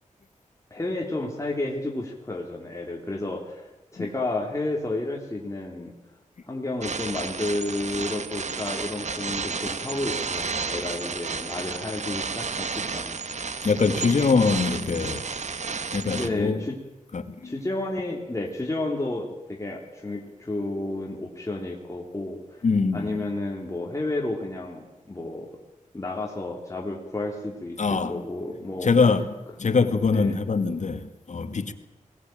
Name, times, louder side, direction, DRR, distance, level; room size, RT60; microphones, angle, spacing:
voice 1, 0.7-5.9 6.5-13.7 16.0-16.7 17.4-22.6 22.9-25.5 25.9-27.8 28.1-28.9 30.1-30.3, left 2 dB, 20° left, 3.2 m, -31 dB
sound 1, 6.8-16.3, right 5 dB, 60° right, 1.3 m, -32 dB
voice 2, 13.6-15.2 15.9-16.6 17.1-17.5 22.6-23.2 27.8-28.2 28.8-31.7, left 4 dB, 60° left, 1.9 m, -23 dB
20.5 x 17.5 x 9.1 m
wide cardioid pair, 75°, 14 cm